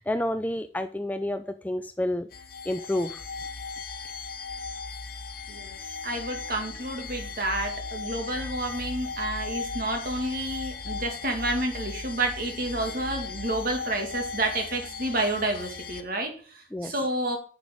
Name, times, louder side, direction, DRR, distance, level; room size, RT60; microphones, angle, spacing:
voice 1, 0.0-2.3 2.7-3.2 16.7-16.9, left 1 dB, 10° left, 10 dB, 0.3 m, -29 dB
sound 1, 2.3-16.0, left 4 dB, 55° left, 1.0 m, -37 dB
voice 2, 5.5-17.4, right 1 dB, 55° right, 4 dB, 1.9 m, -30 dB
10.0 x 6.7 x 3.6 m, 0.43 s
head